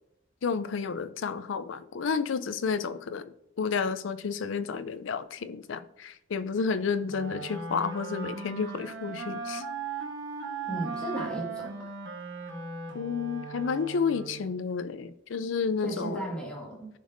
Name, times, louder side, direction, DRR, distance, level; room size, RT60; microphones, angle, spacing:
voice 1, 0.4-9.6 12.9-16.2, left 5 dB, 80° left, 13 dB, 0.5 m, -31 dB
Wind instrument woodwind instrument, 7.1-14.6, right 4 dB, 80° right, 1.2 m, -38 dB
voice 2, 10.7-11.7 15.8-16.9, right 1 dB, 5° left, -3 dB, 1.7 m, -35 dB
15.0 x 5.2 x 2.6 m, 0.83 s
head